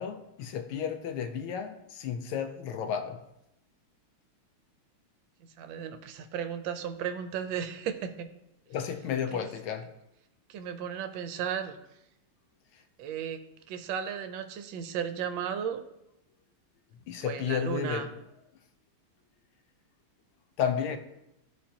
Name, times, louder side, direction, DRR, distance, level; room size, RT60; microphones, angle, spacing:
voice 1, 0.0-3.2 8.7-9.9 17.1-18.1 20.6-21.0, left 8 dB, 80° left, 1.4 m, -32 dB
voice 2, 5.4-8.3 9.3-9.5 10.5-11.8 13.0-13.4 13.7-15.8 17.2-18.1, right 8 dB, 70° right, 1.2 m, -35 dB
12.5 x 4.3 x 2.8 m
omnidirectional pair, 2.4 m